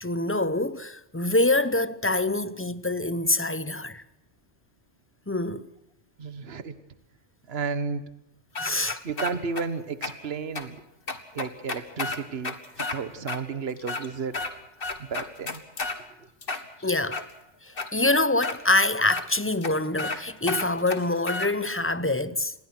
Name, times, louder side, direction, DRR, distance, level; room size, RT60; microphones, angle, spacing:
voice 1, 0.0-4.0 5.3-5.7 8.6-9.0 16.8-17.2 17.6-22.5, left 2 dB, 15° left, 0.7 m, -25 dB
voice 2, 6.2-6.8 7.5-8.0 9.0-10.8 11.3-14.4 15.0-15.6, right 5 dB, 55° right, 1.6 m, -32 dB
sound 1, 8.6-9.6 10.0-10.1 10.6-10.7 11.1-13.0 13.3-13.4 13.8-14.5 14.8-16.0 16.4-17.3 17.8-17.9 18.4-18.6 19.1-19.2 19.6-19.7 20.0-20.2 20.5-21.5, left 3 dB, 50° left, 2.1 m, -31 dB
27.0 x 21.0 x 6.1 m
omnidirectional pair, 1.2 m